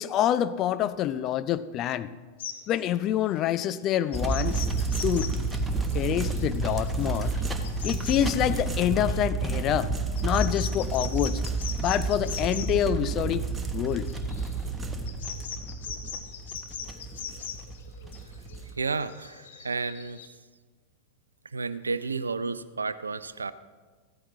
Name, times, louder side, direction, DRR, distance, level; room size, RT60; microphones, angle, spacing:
voice 1, 0.0-2.1 2.7-4.7 5.0-5.3 5.9-7.3 7.8-9.9 10.2-11.4 11.8-13.5 13.7-14.1, left 11 dB, 35° left, 13 dB, 0.5 m, -26 dB
sound 1, 2.4-2.6 4.1-9.2 10.2-12.7 13.9-20.3, left 8 dB, 60° left, 1.1 m, -40 dB
sound 2, 4.1-18.7, right 3 dB, 10° right, 1.1 m, -30 dB
voice 2, 18.8-20.2 21.5-23.5, right 4 dB, 75° right, 15 dB, 0.5 m, -31 dB
15.0 x 13.5 x 3.7 m, 1.4 s
figure-of-eight pair, 90°, 0 cm